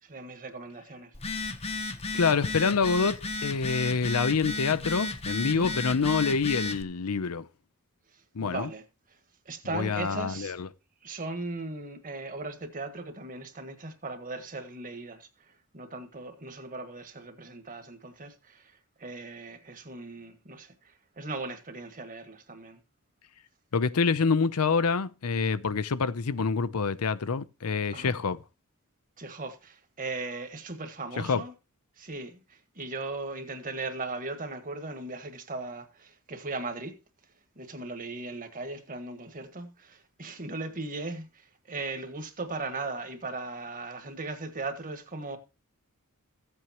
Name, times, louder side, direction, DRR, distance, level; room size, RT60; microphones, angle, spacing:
voice 1, 0.0-1.1 5.4-5.7 8.4-8.8 9.4-10.5 11.0-15.3 15.7-18.7 19.0-20.7 21.2-22.8 27.9-28.2 29.2-31.5 32.0-37.0 37.5-45.4, right 3 dB, 40° right, 1.5 m, -38 dB
Telephone, 1.1-6.8, left 2 dB, 30° left, 0.8 m, -34 dB
voice 2, 2.1-7.5 8.3-8.7 9.7-10.7 23.7-28.4 31.2-31.4, left 5 dB, 85° left, 0.6 m, -26 dB
15.5 x 7.9 x 3.0 m
head